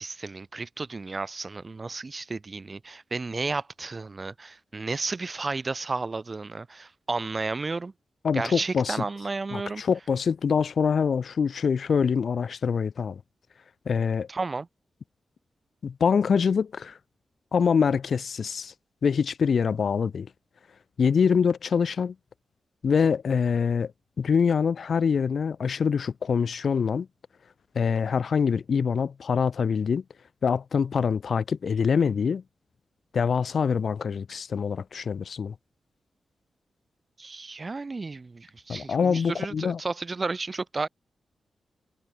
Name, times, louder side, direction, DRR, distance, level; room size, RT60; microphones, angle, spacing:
voice 1, 0.0-7.9 8.3-9.8 14.3-14.7 37.2-40.9, right 3 dB, 30° right, 4.9 m, -32 dB
voice 2, 8.2-9.0 9.5-13.2 13.9-14.3 15.8-17.0 17.5-18.7 19.0-20.3 21.0-22.1 22.8-23.9 24.2-27.1 27.8-30.0 30.4-32.4 33.1-35.5 38.7-39.8, left 6 dB, 60° left, 2.1 m, -24 dB
wide cardioid pair, 120°, 0 cm